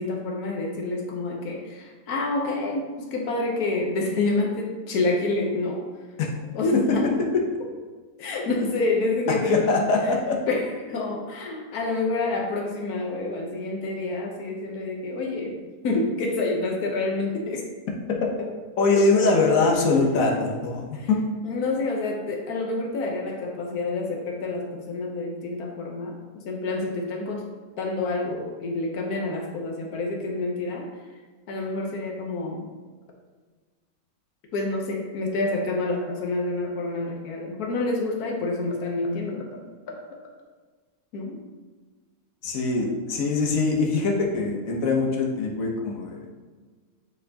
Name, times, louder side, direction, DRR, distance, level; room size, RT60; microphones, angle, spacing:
voice 1, 0.0-5.8 6.5-7.1 8.2-10.1 10.5-15.6 15.8-17.7 18.4-18.5 20.1-20.6 20.9-21.1 21.4-27.5 27.8-30.9 31.5-32.7 34.5-39.6 41.1-41.4, left 2 dB, 90° left, 1 dB, 1.4 m, -28 dB
voice 2, 9.4-10.4 18.2-18.3 18.8-21.2 42.4-46.2, left 3 dB, 65° left, 0 dB, 1.3 m, -22 dB
8.7 x 4.3 x 2.8 m, 1.4 s
omnidirectional pair, 1.6 m